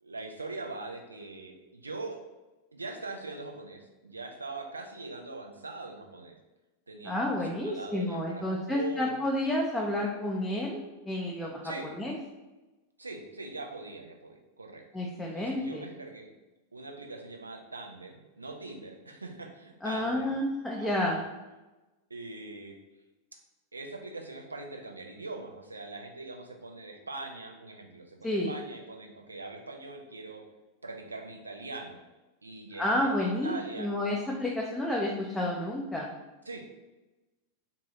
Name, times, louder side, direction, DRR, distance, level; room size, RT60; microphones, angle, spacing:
voice 1, 0.0-2.2 2.7-6.4 6.9-9.2 11.6-11.9 13.0-14.8 15.3-16.3 16.7-20.4 20.7-21.2 22.1-22.8 23.3-23.4 23.7-30.4 30.8-32.0 32.4-33.9 36.4-36.7, right 3 dB, 80° right, 2 dB, 0.4 m, -42 dB
voice 2, 7.0-11.6 12.0-12.1 14.9-15.9 19.8-21.2 28.2-28.5 32.8-36.1, left 1 dB, 5° left, -3 dB, 0.4 m, -30 dB
2.7 x 2.3 x 3.0 m, 1.1 s
figure-of-eight pair, 90°, 0 cm